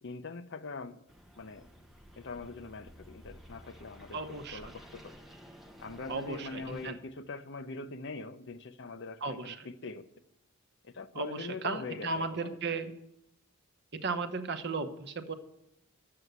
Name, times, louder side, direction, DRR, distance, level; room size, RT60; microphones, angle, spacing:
voice 1, 0.0-1.0 1.3-1.7 2.2-5.1 5.8-10.1 10.8-12.8, left 3 dB, 55° left, 0.7 m, -43 dB
sound 1, 1.1-6.9, equal, ahead, 1.1 m, -53 dB
voice 2, 4.1-4.6 6.1-7.0 9.2-9.6 11.2-12.9 13.9-15.3, right 4 dB, 50° right, 0.9 m, -35 dB
11.0 x 7.7 x 8.0 m
head